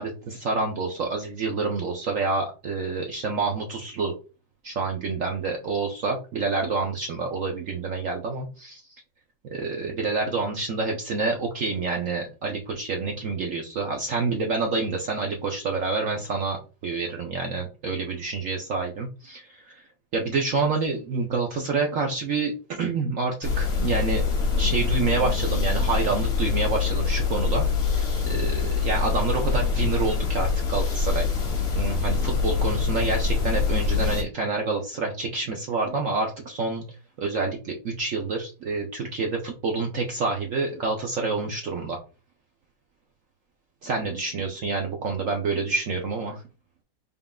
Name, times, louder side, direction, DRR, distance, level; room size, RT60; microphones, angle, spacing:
voice 1, 0.0-4.1 4.6-8.5 9.5-19.8 20.1-24.2 24.6-27.7 28.0-31.3 31.7-36.8 37.2-42.0 43.8-46.4, right 4 dB, 60° right, 2 dB, 0.9 m, -28 dB
sound 1, 23.4-34.2, left 5 dB, 40° left, 1.1 m, -24 dB
5.3 x 3.6 x 2.3 m, 0.33 s
omnidirectional pair, 1.9 m